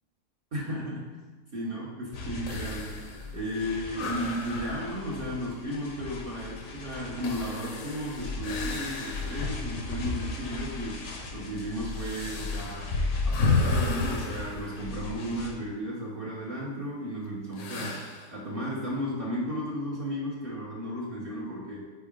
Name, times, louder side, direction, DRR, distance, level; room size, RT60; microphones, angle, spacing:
voice 1, 0.5-1.2 1.5-3.0 3.3-11.0 11.3-18.0 18.3-21.8, equal, 40° right, -6 dB, 1.0 m, -34 dB
sound 1, 2.1-15.5, left 3 dB, 85° left, 1.5 m, -36 dB
sound 2, 2.5-9.6 10.1-10.2 10.9-15.5 17.5-18.4, left 4 dB, 60° left, 1.0 m, -34 dB
4.6 x 4.2 x 5.0 m, 1.3 s
omnidirectional pair, 1.8 m